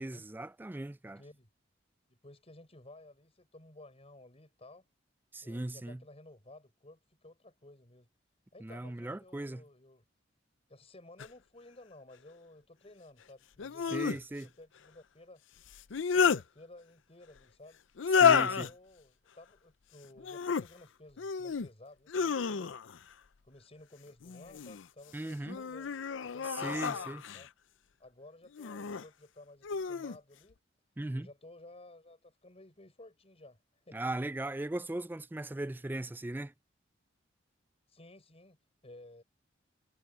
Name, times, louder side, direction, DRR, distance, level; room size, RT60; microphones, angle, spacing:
voice 1, 0.0-1.2 5.3-6.0 8.6-9.6 13.9-14.5 18.2-18.7 25.1-25.6 26.4-27.2 31.0-31.3 33.9-36.5, right 1 dB, 10° right, 0.4 m, -38 dB
voice 2, 1.2-1.5 2.1-4.9 5.4-8.1 8.5-10.0 10.7-15.4 15.9-17.8 18.4-22.7 23.4-25.9 26.2-27.5 28.0-30.6 31.1-33.6 33.8-34.0 37.9-38.6 38.8-39.2, left 2 dB, 35° left, 6.4 m, -55 dB
sound 1, 11.2-11.3 13.6-14.2 15.7-16.4 18.0-18.7 20.2-20.7 21.2-21.7 22.1-23.0 24.2-24.8 25.5-27.5 28.6-29.0 29.6-30.2, left 6 dB, 80° left, 0.5 m, -30 dB
head